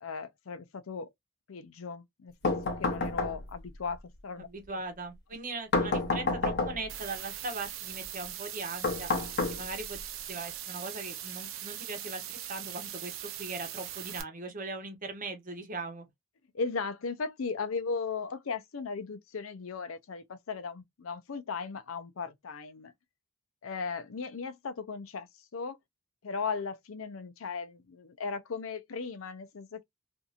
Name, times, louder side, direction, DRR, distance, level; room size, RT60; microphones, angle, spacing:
voice 1, 0.0-1.1 1.5-4.5 16.5-22.9 23.6-25.3 25.5-25.8 26.2-29.8, left 5 dB, 85° left, 0.6 m, -37 dB
sound 1, 2.4-3.7 5.7-7.0 8.8-10.0, left 3 dB, 55° left, 0.8 m, -30 dB
voice 2, 4.4-9.1 9.5-10.0 10.3-13.1 13.4-16.0, right 3 dB, 40° right, 0.9 m, -39 dB
sound 2, 6.9-14.2, right 11 dB, 80° right, 0.6 m, -41 dB
2.7 x 2.6 x 2.4 m
head